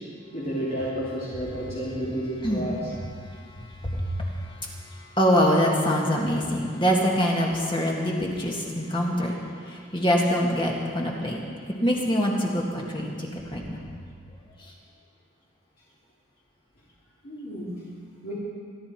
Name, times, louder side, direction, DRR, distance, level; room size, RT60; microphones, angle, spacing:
voice 1, 0.3-2.8 17.2-17.7 18.2-18.3, right 1 dB, 45° left, -9 dB, 3.3 m, -31 dB
voice 2, 2.4-2.7 3.7-4.7 5.2-9.3 9.6-13.9 14.6-14.7, equal, 25° left, -2 dB, 2.1 m, -25 dB
25.0 x 11.5 x 4.5 m, 2.2 s
head